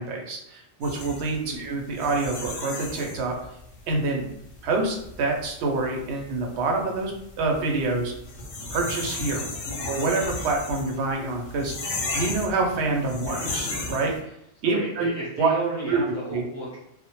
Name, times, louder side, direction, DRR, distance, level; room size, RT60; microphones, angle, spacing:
voice 1, 0.0-3.3 3.9-4.3 4.6-7.1 7.4-8.1 8.7-9.4 9.9-11.7 12.1-14.1 14.6-15.1 15.4-15.5 15.9-16.4, right 3 dB, 65° right, 1 dB, 0.8 m, -26 dB
sound 1, 0.8-14.2, left 3 dB, 55° left, 0.7 m, -35 dB
voice 2, 9.6-10.0 13.2-13.5 14.6-16.8, right 2 dB, 25° right, -7 dB, 0.4 m, -33 dB
2.1 x 2.0 x 2.9 m, 0.77 s
omnidirectional pair, 1.3 m